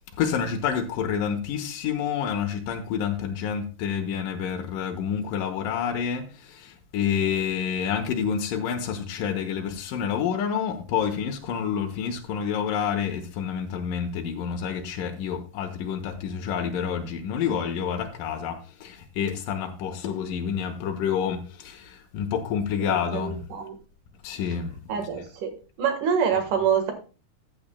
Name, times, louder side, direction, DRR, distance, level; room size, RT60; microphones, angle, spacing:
voice 1, 0.2-23.4 24.2-24.8, left 7 dB, 85° left, 2.6 m, -28 dB
voice 2, 22.8-23.7 24.9-25.5 25.8-26.9, right 7 dB, 70° right, 3.0 m, -26 dB
14.0 x 8.7 x 2.2 m
omnidirectional pair, 3.8 m